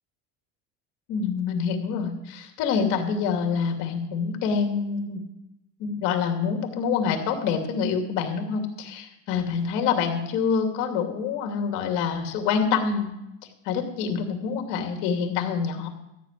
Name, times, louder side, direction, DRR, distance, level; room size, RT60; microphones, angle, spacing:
voice 1, 1.1-5.2 5.8-13.1 13.6-15.9, left 6 dB, 75° left, 4 dB, 2.6 m, -26 dB
14.0 x 6.0 x 9.1 m, 0.87 s
cardioid pair, 125°, 31 cm